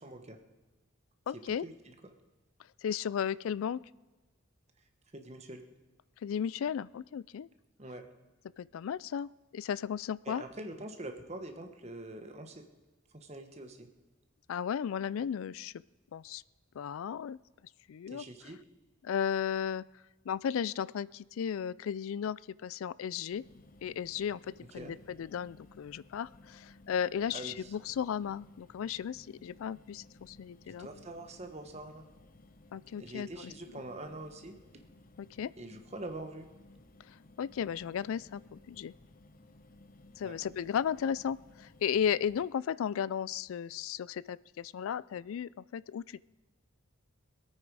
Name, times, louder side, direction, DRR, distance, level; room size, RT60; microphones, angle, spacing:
voice 1, 0.0-0.4 1.3-1.9 5.1-5.6 7.8-8.0 10.2-12.7 13.1-13.9 18.1-18.6 24.7-24.9 27.3-27.7 30.7-32.0 33.0-34.5 35.6-36.5 40.2-40.4, right 1 dB, 30° right, 6 dB, 1.1 m, -44 dB
voice 2, 1.3-1.6 2.8-3.8 6.2-7.5 8.6-10.4 14.5-15.7 16.1-16.4 16.8-17.4 17.9-18.2 19.0-19.8 20.3-23.4 23.8-30.9 32.7-33.5 35.2-35.5 37.4-38.9 40.2-46.2, left 8 dB, 75° left, 20 dB, 0.3 m, -35 dB
sound 1, 23.3-42.5, left 2 dB, 40° left, 0.8 m, -58 dB
21.0 x 8.9 x 4.7 m, 1.2 s
head